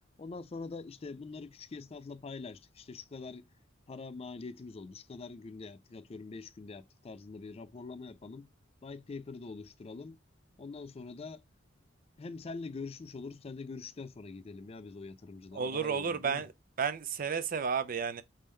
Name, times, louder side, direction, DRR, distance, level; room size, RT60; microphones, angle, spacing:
voice 1, 0.2-3.5 3.9-8.5 8.8-10.2 10.6-11.4 12.2-16.4, left 4 dB, 30° left, 0.4 m, -44 dB
voice 2, 15.5-16.5 16.8-18.2, right 6 dB, 50° right, 0.5 m, -32 dB
4.1 x 3.6 x 3.2 m
head